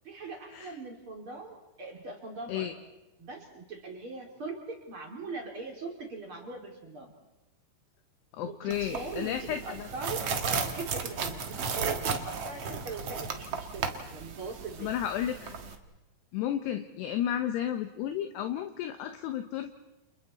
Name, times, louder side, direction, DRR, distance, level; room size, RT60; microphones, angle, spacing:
voice 1, 0.0-2.7 3.2-7.1 8.4-15.0, right 3 dB, 35° right, 1 dB, 3.0 m, -41 dB
voice 2, 8.3-9.9 14.8-15.6 16.3-19.8, left 10 dB, 75° left, 7 dB, 2.8 m, -32 dB
sound 1, 8.7-15.8, right 5 dB, 75° right, 1.4 m, -35 dB
30.0 x 29.5 x 4.2 m, 1.0 s
omnidirectional pair, 5.4 m